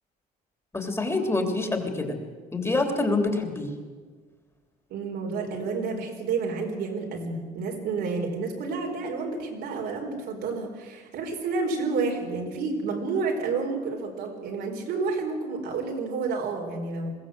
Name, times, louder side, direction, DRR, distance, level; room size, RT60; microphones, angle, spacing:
voice 1, 0.7-2.2 2.5-3.7, left 2 dB, 15° left, 4 dB, 3.1 m, -26 dB
voice 2, 4.9-17.1, right 4 dB, 75° right, 1 dB, 4.4 m, -30 dB
21.5 x 15.5 x 7.7 m, 1.5 s
cardioid pair, 110°, 17 cm